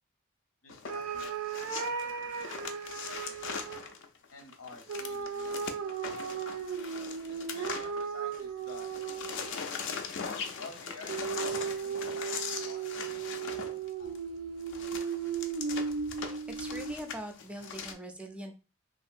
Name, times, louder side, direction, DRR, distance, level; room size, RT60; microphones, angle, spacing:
voice 1, 0.6-2.5 3.1-3.7 4.3-5.9 7.3-8.9 10.6-14.1, left 3 dB, 90° left, 3 dB, 0.8 m, -51 dB
sound 1, 0.7-8.4 8.7-17.9, left 5 dB, 65° left, 0.4 m, -40 dB
sound 2, 0.9-3.8 4.9-9.7 11.1-17.2, right 6 dB, 90° right, 0.4 m, -36 dB
voice 2, 16.2-18.6, right 1 dB, 5° right, 4 dB, 0.3 m, -43 dB
2.9 x 2.6 x 2.4 m, 0.33 s
head